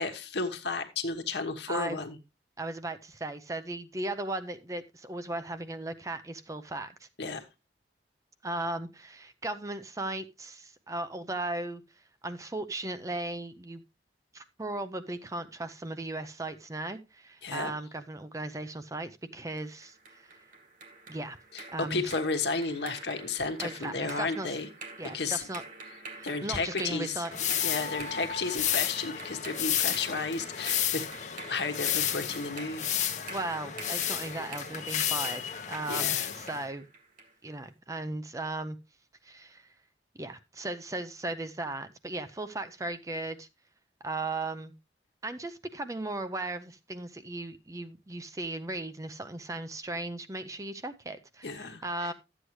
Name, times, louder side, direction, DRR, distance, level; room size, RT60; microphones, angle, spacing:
voice 1, 0.0-2.2 7.2-7.4 17.4-17.7 21.5-24.7 25.1-25.4 26.2-27.2 27.5-31.1 31.5-33.0 35.9-36.3 51.4-52.1, left 4 dB, 75° left, 1.2 m, -33 dB
voice 2, 2.6-7.1 8.4-11.8 12.2-13.8 14.3-20.4 21.1-21.4 21.7-22.0 23.6-24.6 25.0-25.6 26.1-27.3 33.3-35.4 35.7-36.9 37.4-38.8 39.2-39.7 40.1-43.5 44.0-44.7 45.2-52.1, right 2 dB, 20° right, 0.5 m, -37 dB
sound 1, 19.6-37.4, right 3 dB, 50° right, 1.9 m, -47 dB
sound 2, 27.3-36.7, left 10 dB, 45° left, 0.9 m, -32 dB
12.5 x 8.1 x 3.1 m
head